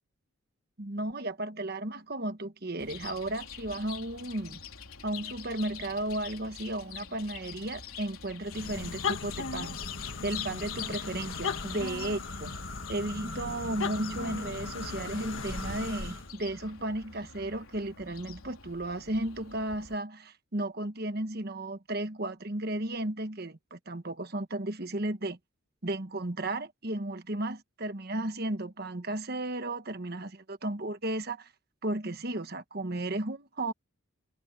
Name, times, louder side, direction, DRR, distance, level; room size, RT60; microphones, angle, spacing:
voice 1, 0.8-4.6 5.0-9.8 10.2-12.6 12.9-25.4 25.8-31.5 31.8-33.7, right 1 dB, 45° right, 1.4 m, -34 dB
Chirp tweet, 2.8-20.0, left 8 dB, 85° left, 3.8 m, -45 dB
sound 1, 8.4-16.3, left 4 dB, 65° left, 1.7 m, -37 dB
head